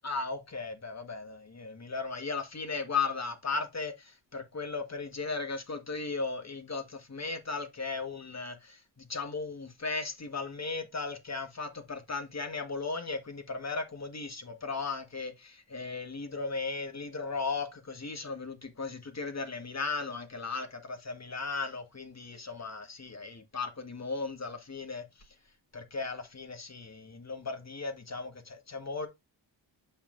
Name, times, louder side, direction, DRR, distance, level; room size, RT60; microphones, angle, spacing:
voice 1, 0.0-25.1 25.7-29.1, left 4 dB, 35° left, 1.6 m, -36 dB
7.2 x 5.6 x 2.6 m
cardioid pair, 80°, 46 cm